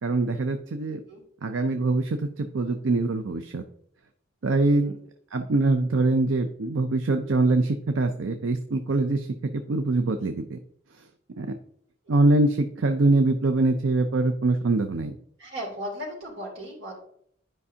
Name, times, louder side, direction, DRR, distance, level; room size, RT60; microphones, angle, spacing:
voice 1, 0.0-1.0 1.4-3.6 4.4-4.9 5.3-10.6 10.9-11.1 11.4-11.5 12.1-15.2, right 2 dB, 75° right, 7 dB, 0.5 m, -24 dB
voice 2, 15.4-17.0, equal, 60° right, -3 dB, 2.8 m, -36 dB
11.0 x 5.3 x 2.8 m, 0.65 s
head